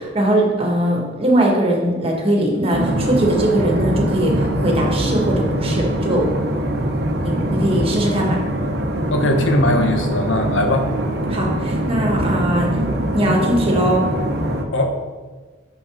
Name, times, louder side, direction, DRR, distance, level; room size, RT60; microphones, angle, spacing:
voice 1, 0.0-6.3 7.2-8.4 11.3-12.7 13.1-14.0, right 1 dB, 30° right, 0 dB, 1.5 m, -20 dB
sound 1, 2.7-14.6, right 1 dB, 55° right, 0.8 m, -22 dB
voice 2, 9.1-10.9 14.7-15.0, left 1 dB, 75° left, 5 dB, 1.0 m, -19 dB
6.3 x 6.1 x 4.9 m, 1.4 s
head